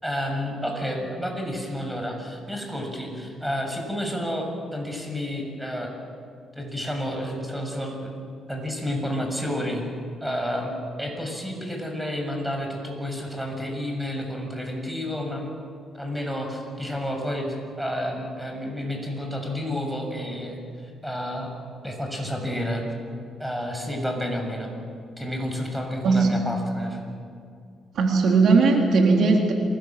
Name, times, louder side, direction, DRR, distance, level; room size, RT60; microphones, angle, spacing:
voice 1, 0.0-5.9 6.5-8.1 8.5-9.8 10.2-10.7 11.0-15.5 15.9-17.5 17.8-21.5 21.8-22.8 23.4-24.7 25.2-27.0, equal, ahead, 2 dB, 7.2 m, -30 dB
voice 2, 26.0-26.4 27.9-29.5, right 4 dB, 65° right, 1 dB, 3.7 m, -18 dB
28.5 x 21.5 x 7.7 m, 2.3 s
cardioid pair, 90°, 0 cm